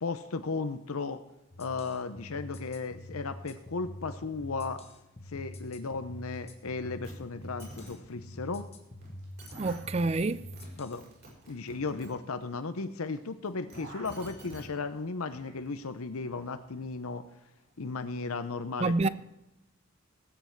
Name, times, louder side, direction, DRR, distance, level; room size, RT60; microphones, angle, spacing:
voice 1, 0.0-1.2 1.6-4.8 5.3-8.7 10.8-11.0 11.5-17.2 17.8-19.1, left 4 dB, 80° left, 0.8 m, -35 dB
sound 1, 1.5-11.0, left 1 dB, 30° left, 1.4 m, -45 dB
sound 2, 6.3-6.4 6.6-7.0 7.3-8.5 9.2-13.2 13.4-15.7 16.0-16.9, right 1 dB, 85° right, 4.7 m, -53 dB
sound 3, 7.0-7.1 7.4-7.9 9.0-9.1 9.4-9.7 10.3-10.7 10.9-12.1 13.5-14.6 15.7-15.8, right 1 dB, 50° right, 6.0 m, -48 dB
voice 2, 9.6-10.5 18.8-19.1, right 3 dB, 30° right, 0.4 m, -27 dB
19.0 x 8.0 x 4.7 m
head